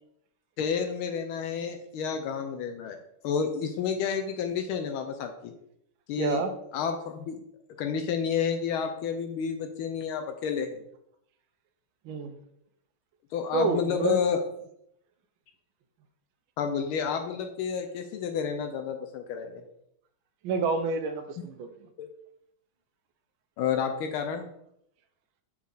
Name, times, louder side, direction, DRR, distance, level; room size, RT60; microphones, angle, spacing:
voice 1, 0.6-3.0 3.2-5.5 6.1-6.4 6.7-7.4 7.8-10.8 13.3-14.4 16.6-19.6 22.0-22.1 23.6-24.5, left 7 dB, 80° left, 6 dB, 1.5 m, -30 dB
voice 2, 6.2-6.5 12.0-12.4 13.5-14.2 20.4-21.7, right 4 dB, 80° right, 8 dB, 1.5 m, -28 dB
7.2 x 4.6 x 3.9 m, 0.75 s
omnidirectional pair, 2.3 m